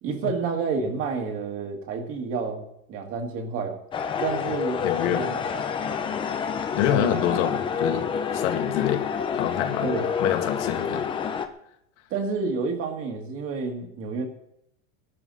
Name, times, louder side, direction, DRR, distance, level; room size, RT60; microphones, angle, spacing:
voice 1, 0.0-3.8 4.2-5.7 6.8-7.2 9.8-10.1 12.1-14.3, right 4 dB, 30° right, 3 dB, 2.2 m, -30 dB
sound 1, 3.9-11.5, left 6 dB, 10° left, 0.6 m, -28 dB
voice 2, 4.8-5.3 6.7-9.1 9.3-9.9 10.2-11.0, left 11 dB, 55° left, 5 dB, 2.2 m, -26 dB
19.5 x 12.0 x 4.2 m, 0.76 s
supercardioid pair, 155°, 42 cm